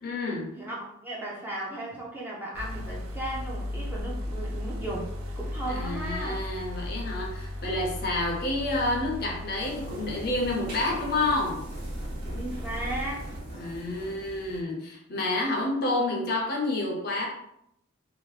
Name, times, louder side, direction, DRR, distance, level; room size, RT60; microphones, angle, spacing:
voice 1, 0.0-0.5 5.7-11.6 13.5-17.3, left 2 dB, 45° left, -1 dB, 0.6 m, -29 dB
voice 2, 0.6-5.1 5.4-6.4 12.2-13.3, right 1 dB, 10° right, -5 dB, 0.4 m, -36 dB
sound 1, 2.5-13.4, equal, 80° right, 0.5 m, -36 dB
sound 2, 9.6-14.6, right 1 dB, 45° right, 1.2 m, -42 dB
2.7 x 2.0 x 3.2 m, 0.77 s
head